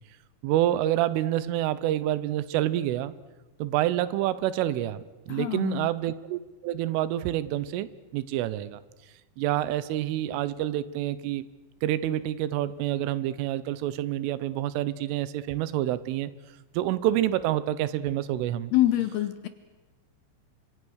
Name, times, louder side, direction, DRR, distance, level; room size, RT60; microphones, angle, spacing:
voice 1, 0.4-3.1 3.6-8.8 9.4-11.5 11.8-16.3 16.8-18.7, right 13 dB, 90° right, 16 dB, 3.5 m, -28 dB
voice 2, 5.3-5.9 18.7-19.5, left 14 dB, 75° left, 11 dB, 2.5 m, -25 dB
30.0 x 26.0 x 6.5 m, 1.1 s
omnidirectional pair, 5.6 m